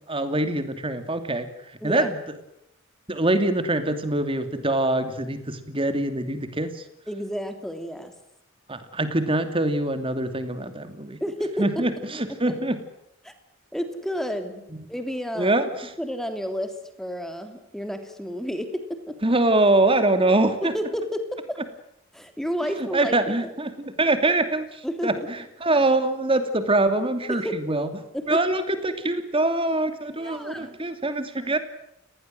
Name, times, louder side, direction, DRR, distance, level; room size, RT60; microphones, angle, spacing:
voice 1, 0.1-1.5 1.8-2.2 3.1-6.8 8.7-11.2 11.6-12.8 15.4-15.7 19.2-20.7 22.8-27.9 28.3-31.6, right 2 dB, 25° right, 9 dB, 2.7 m, -24 dB
voice 2, 1.8-2.1 7.1-8.1 11.2-11.8 12.1-12.6 13.2-13.3 13.7-14.6 14.9-15.5 16.0-19.2 20.6-21.6 22.1-23.5 24.8-25.3 27.3-27.7 28.1-28.4 30.2-30.8, equal, ahead, 7 dB, 3.1 m, -31 dB
30.0 x 19.5 x 7.8 m, 0.79 s
head